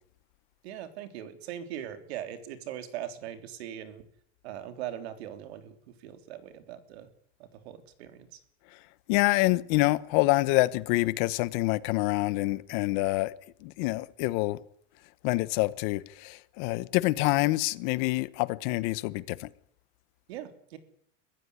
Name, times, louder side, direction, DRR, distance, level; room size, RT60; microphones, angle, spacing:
voice 1, 0.6-4.0 4.4-5.8 6.0-7.1 7.4-8.4 20.3-20.8, right 11 dB, 75° right, 3.5 m, -40 dB
voice 2, 9.1-13.3 13.6-14.6 15.2-19.5, left 20 dB, 45° left, 1.0 m, -26 dB
23.0 x 15.5 x 9.7 m
supercardioid pair, 170°, 32 cm